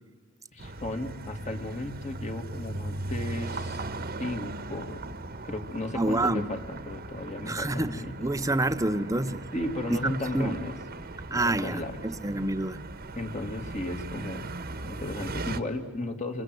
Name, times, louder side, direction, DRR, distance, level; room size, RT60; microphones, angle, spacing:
voice 1, 0.5-3.8 4.2-5.0 5.4-8.2 9.5-10.8 11.3-12.0 13.2-14.5 14.8-16.4, left 1 dB, 35° left, 5 dB, 2.2 m, -35 dB
sound 1, 0.6-15.6, right 2 dB, 45° right, 1.3 m, -38 dB
voice 2, 5.9-6.5 7.4-9.4 10.0-10.5 11.3-12.8, right 2 dB, 15° right, 12 dB, 0.8 m, -28 dB
27.5 x 27.0 x 7.8 m, 1.5 s
head